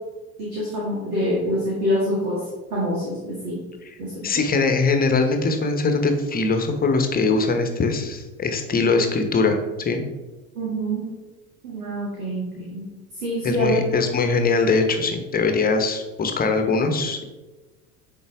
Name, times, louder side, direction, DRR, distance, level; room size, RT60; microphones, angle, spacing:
voice 1, 0.4-2.4 2.7-3.6 4.0-4.4 10.5-11.1 11.6-12.8 13.2-13.8, equal, 70° right, -5 dB, 2.0 m, -26 dB
voice 2, 4.2-10.0 13.4-17.3, left 3 dB, 20° left, 6 dB, 0.9 m, -22 dB
9.7 x 4.1 x 3.5 m, 1.2 s
figure-of-eight pair, 70°, 45 cm